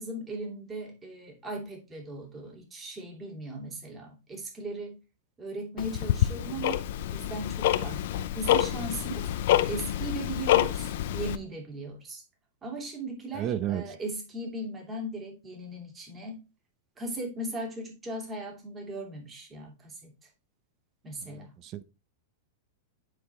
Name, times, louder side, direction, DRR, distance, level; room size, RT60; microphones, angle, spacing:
voice 1, 0.0-5.0 5.4-6.8 7.1-9.3 9.7-12.2 12.6-16.4 17.0-20.1 21.0-21.5, right 1 dB, 20° right, 2.6 m, -38 dB
Tick-tock, 5.8-11.4, left 13 dB, 65° left, 0.6 m, -27 dB
voice 2, 13.3-13.8 21.2-21.8, right 11 dB, 40° right, 0.7 m, -32 dB
9.3 x 4.1 x 3.3 m
hypercardioid pair, 115°, 0 cm